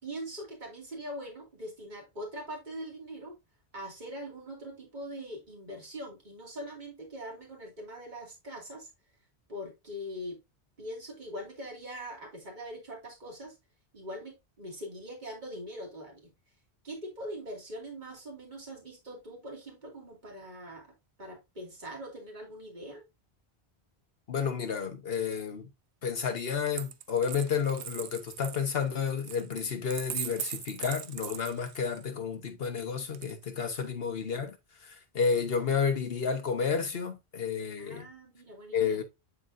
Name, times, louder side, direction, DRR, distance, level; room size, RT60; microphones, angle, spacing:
voice 1, 0.0-3.4 3.7-8.9 9.5-10.4 10.8-13.6 13.9-16.3 16.8-20.9 21.2-23.0 33.7-33.8 37.8-39.0, equal, 45° right, 2.5 m, -42 dB
voice 2, 24.3-25.7 26.0-34.6 34.8-38.1 38.7-39.0, left 6 dB, 65° left, 1.4 m, -31 dB
Coin (dropping), 26.7-32.1 33.1-33.9, right 11 dB, 90° right, 0.9 m, -40 dB
9.5 x 3.9 x 2.6 m
omnidirectional pair, 1.1 m